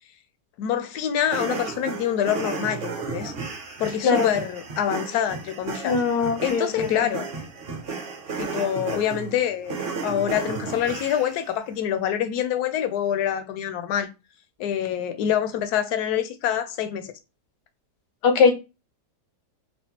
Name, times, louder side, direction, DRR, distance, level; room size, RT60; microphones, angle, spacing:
voice 1, 0.6-3.3 3.8-5.9 6.4-7.3 8.4-14.1 14.6-17.1, left 10 dB, 75° left, 1.1 m, -26 dB
sound 1, 1.2-11.5, right 5 dB, 45° right, 0.8 m, -34 dB
voice 2, 5.8-7.1 18.2-18.5, left 5 dB, 90° left, 1.4 m, -21 dB
4.2 x 2.2 x 2.8 m
omnidirectional pair, 1.8 m